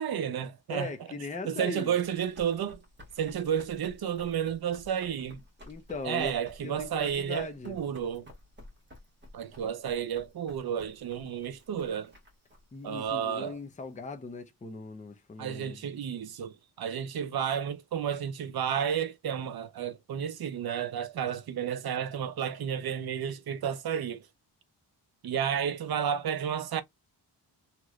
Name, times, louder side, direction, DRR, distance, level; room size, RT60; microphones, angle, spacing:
voice 1, 0.0-0.9 1.5-2.8 3.2-5.4 6.0-8.3 9.3-12.1 12.8-13.6 15.4-24.3 25.2-26.8, right 8 dB, 60° right, 0.6 m, -32 dB
voice 2, 0.7-2.0 3.3-3.4 5.6-6.3 6.6-7.8 12.7-15.8, left 3 dB, 20° left, 0.5 m, -39 dB
Run, 1.8-14.1, left 1 dB, 25° right, 1.4 m, -54 dB
3.0 x 2.9 x 2.3 m
wide cardioid pair, 120°, 42 cm